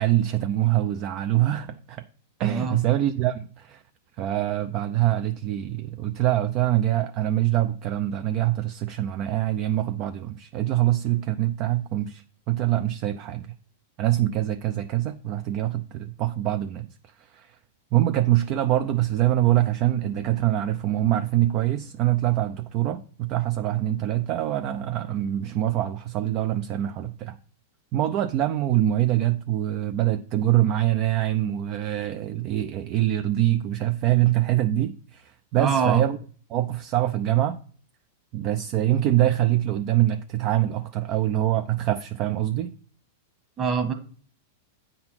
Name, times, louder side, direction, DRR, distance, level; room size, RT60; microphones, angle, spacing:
voice 1, 0.0-2.0 2.4-3.8 4.2-13.5 14.0-16.9 17.2-17.6 17.9-27.4 27.9-36.2 36.5-37.6 38.3-42.8, right 13 dB, 40° right, 0.5 m, -24 dB
voice 2, 2.5-2.8 35.6-36.0 43.6-43.9, right 6 dB, 25° right, 1.5 m, -24 dB
8.7 x 3.9 x 6.1 m
hypercardioid pair, 130°, 0 cm